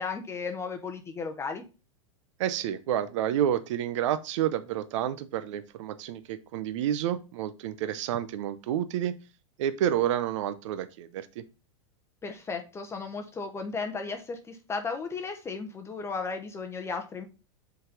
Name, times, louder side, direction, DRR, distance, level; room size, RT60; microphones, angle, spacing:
voice 1, 0.0-1.6 12.2-17.3, left 4 dB, 15° left, 5 dB, 0.7 m, -35 dB
voice 2, 2.4-9.1 9.6-11.4, right 10 dB, 70° right, 12 dB, 0.6 m, -29 dB
5.4 x 3.9 x 5.0 m, 0.31 s
supercardioid pair, 130°, 16 cm